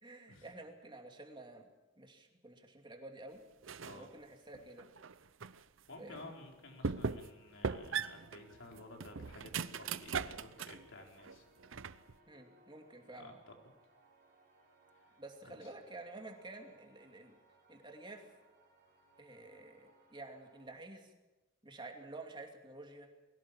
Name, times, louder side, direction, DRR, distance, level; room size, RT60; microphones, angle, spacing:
voice 1, 0.0-3.4 3.9-4.9 6.0-6.3 12.3-13.4 15.2-17.4 17.7-18.2 19.2-21.1 21.6-23.1, right 2 dB, 25° right, 3 dB, 2.7 m, -51 dB
sound 1, 3.6-4.1 4.5-5.6 6.1-6.2 6.8-7.4 7.6-10.8 11.2-12.1, right 5 dB, 75° right, 0.7 m, -39 dB
voice 2, 3.8-4.1 5.9-11.5 13.1-13.5 15.4-15.7, left 2 dB, 70° left, 2 dB, 4.2 m, -53 dB
sound 2, 6.4-20.7, right 1 dB, 45° right, 4.7 m, -68 dB
22.5 x 17.0 x 7.4 m, 1.1 s
head